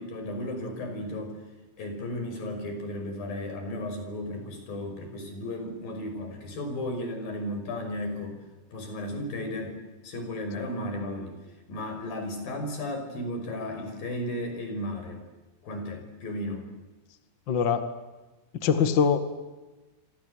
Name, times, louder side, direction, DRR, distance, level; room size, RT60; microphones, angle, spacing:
voice 1, 0.0-1.4 1.8-8.4 8.7-9.8 10.0-11.4 11.7-15.2 15.6-16.7, left 1 dB, 50° left, 5 dB, 7.3 m, -34 dB
voice 2, 17.5-17.9 18.6-19.3, left 6 dB, 70° left, 9 dB, 1.0 m, -23 dB
27.5 x 26.5 x 8.0 m, 1.2 s
omnidirectional pair, 5.5 m